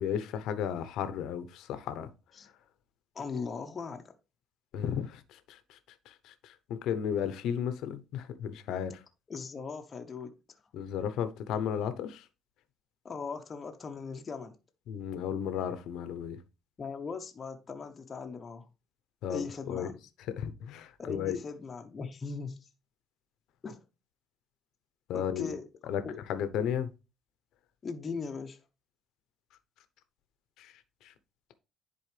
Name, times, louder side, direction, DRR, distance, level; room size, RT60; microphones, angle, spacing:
voice 1, 0.0-2.1 4.7-5.2 5.5-5.6 6.2-9.0 10.7-12.2 14.9-16.4 19.2-19.9 20.4-21.4 25.1-25.5 25.9-26.0 26.3-26.9 30.6-30.7, left 8 dB, 70° left, 0.8 m, -34 dB
voice 2, 3.1-4.1 9.3-10.4 13.0-14.6 16.8-18.7 19.3-20.0 21.0-22.6 23.6-23.8 25.1-25.7 26.0-26.2 27.8-28.6, left 5 dB, 25° left, 0.7 m, -39 dB
10.5 x 4.2 x 3.3 m
cardioid pair, 145°, 0 cm